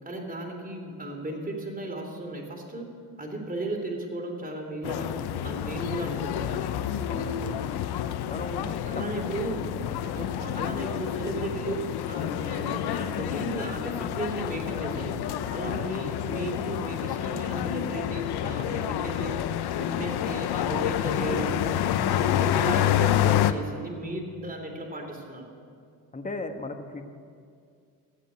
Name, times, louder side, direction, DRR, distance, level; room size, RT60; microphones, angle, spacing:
voice 1, 0.0-2.9 3.2-6.6 8.9-9.7 10.1-15.1 15.5-19.3 19.8-21.6 22.1-25.5, right 1 dB, 20° right, 2 dB, 3.5 m, -35 dB
sound 1, 4.8-23.5, left 11 dB, 65° left, 0.8 m, -28 dB
voice 2, 7.1-7.6 8.3-8.7 15.6-15.9 22.2-22.5 26.1-27.1, left 3 dB, 20° left, 5 dB, 1.3 m, -36 dB
15.0 x 8.4 x 9.4 m, 2.2 s
supercardioid pair, 65°, 42 cm